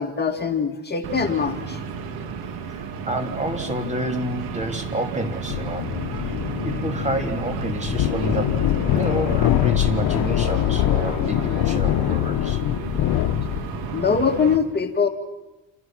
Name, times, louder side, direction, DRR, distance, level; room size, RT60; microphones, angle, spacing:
voice 1, 0.0-1.8 13.9-15.1, left 6 dB, 25° left, 4 dB, 2.3 m, -22 dB
sound 1, 1.0-14.6, right 5 dB, 90° right, 2.6 m, -32 dB
voice 2, 3.1-5.9 6.6-12.6, right 1 dB, 20° right, 5 dB, 3.3 m, -29 dB
sound 2, 5.5-13.8, left 13 dB, 75° left, 1.0 m, -23 dB
28.5 x 28.0 x 6.1 m, 1.0 s
cardioid pair, 115°, 36 cm